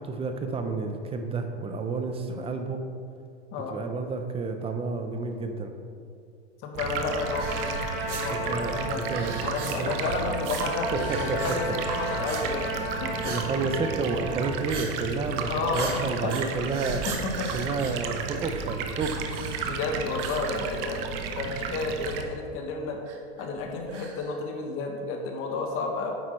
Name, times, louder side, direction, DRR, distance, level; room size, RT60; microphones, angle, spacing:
voice 1, 0.0-2.8 3.7-5.7 8.3-9.3 9.8-9.9 10.9-11.4 11.7-11.8 12.2-12.4 13.2-17.0 17.5-19.2, right 4 dB, 15° right, 6 dB, 0.6 m, -30 dB
voice 2, 6.6-9.0 9.4-13.7 15.5-16.3 17.1-17.5 19.6-21.0 21.3-23.0 23.4-26.1, left 3 dB, 40° left, 2 dB, 1.3 m, -32 dB
Stream, 6.7-22.2, right 6 dB, 50° right, 1.0 m, -34 dB
Trumpet, 7.2-14.5, right 1 dB, 75° left, 2.2 m, -35 dB
sound 1, 7.4-8.2 9.0-10.0 10.4-10.6 10.9-11.6 11.8-12.4 12.7-13.5 13.8-14.1 14.7-14.9 15.2-15.3 15.7-18.6 19.0-19.8 20.2-21.0 21.3-21.4 22.0-22.1 23.1-24.4, right 5 dB, 90° right, 1.4 m, -38 dB
9.3 x 8.0 x 3.3 m, 2.3 s
hypercardioid pair, 125°, 35 cm